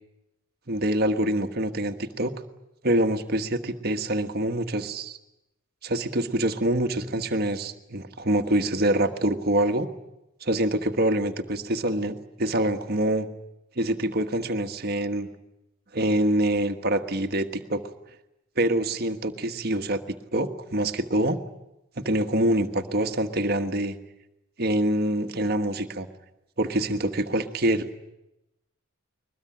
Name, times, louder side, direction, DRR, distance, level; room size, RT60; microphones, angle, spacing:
voice 1, 0.7-2.3 2.8-5.2 5.8-9.9 10.4-13.3 13.8-15.3 15.9-17.8 18.6-21.4 22.0-24.0 24.6-26.1 26.6-27.9, right 1 dB, 45° right, 6 dB, 1.4 m, -25 dB
21.5 x 21.5 x 10.0 m, 0.90 s
head